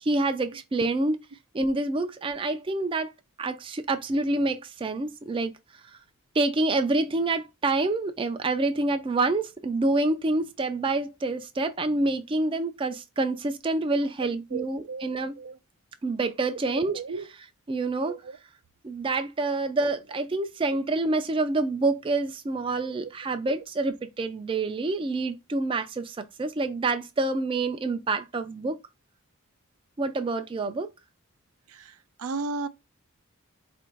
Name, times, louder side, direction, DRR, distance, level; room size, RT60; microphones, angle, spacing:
voice 1, 0.0-1.2 1.5-3.1 3.4-5.5 6.3-15.4 16.0-17.0 17.7-18.2 18.8-28.8 30.0-30.9, right 2 dB, 25° right, 0.3 m, -27 dB
voice 2, 14.5-15.6 16.7-17.3 18.1-18.3 22.9-23.1 31.7-32.7, right 4 dB, 75° right, 0.5 m, -35 dB
4.6 x 2.5 x 4.4 m
head